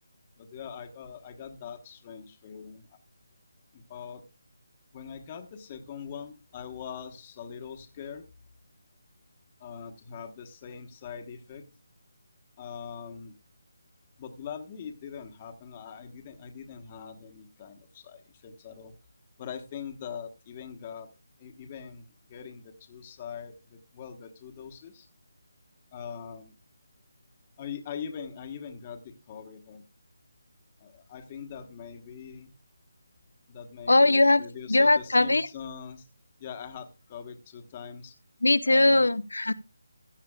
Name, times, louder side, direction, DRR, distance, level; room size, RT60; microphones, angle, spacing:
voice 1, 0.4-2.9 3.7-4.2 4.9-8.2 9.6-11.7 12.6-13.3 14.2-18.9 19.4-21.1 21.4-25.1 25.9-26.5 27.6-29.8 30.8-32.5 33.5-36.1 36.4-38.1 38.6-39.1, left 7 dB, 25° left, 6 dB, 1.1 m, -42 dB
voice 2, 33.9-35.5 38.4-39.5, left 2 dB, 85° left, 16 dB, 0.7 m, -21 dB
15.5 x 9.9 x 2.3 m, 0.28 s
figure-of-eight pair, 160°, 0 cm